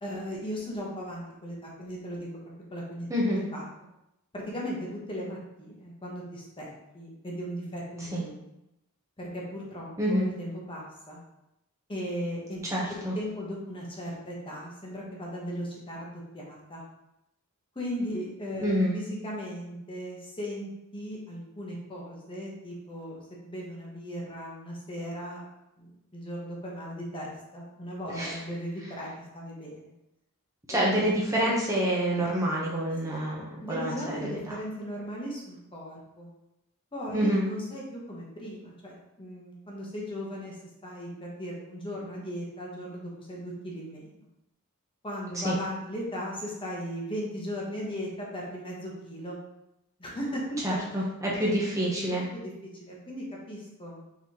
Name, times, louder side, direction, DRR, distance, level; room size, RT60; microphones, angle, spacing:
voice 1, 0.0-2.3 2.7-3.1 3.5-3.6 4.3-8.4 9.2-11.2 11.9-12.6 12.9-16.8 17.7-25.4 25.8-29.9 30.7-31.1 33.1-33.3 33.6-36.3 36.9-40.6 40.8-44.2 45.0-49.4 50.0-50.8 51.4-51.5 52.0-54.0, equal, 25° left, -3 dB, 1.0 m, -37 dB
voice 2, 3.1-3.4 8.1-8.2 10.0-10.3 12.6-13.1 18.6-19.0 28.1-28.4 30.7-34.5 37.1-37.5 45.3-45.6 50.6-52.2, equal, 15° right, -5 dB, 0.8 m, -27 dB
4.7 x 3.9 x 2.8 m, 0.89 s
head